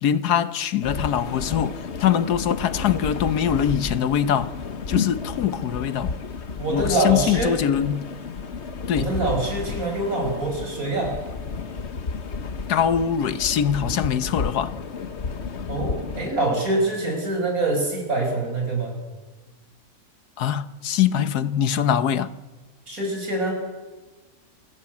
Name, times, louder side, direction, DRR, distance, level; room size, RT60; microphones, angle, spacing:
voice 1, 0.0-4.5 4.9-6.1 6.7-8.1 8.9-9.1 12.7-14.7 20.4-22.3, left 9 dB, 90° left, 1.5 m, -23 dB
sound 1, 0.8-16.3, left 5 dB, 50° left, 1.4 m, -31 dB
voice 2, 6.6-7.5 9.0-11.2 15.7-19.0 22.9-23.5, right 2 dB, 65° right, 7.0 m, -25 dB
28.0 x 20.5 x 8.5 m
omnidirectional pair, 1.6 m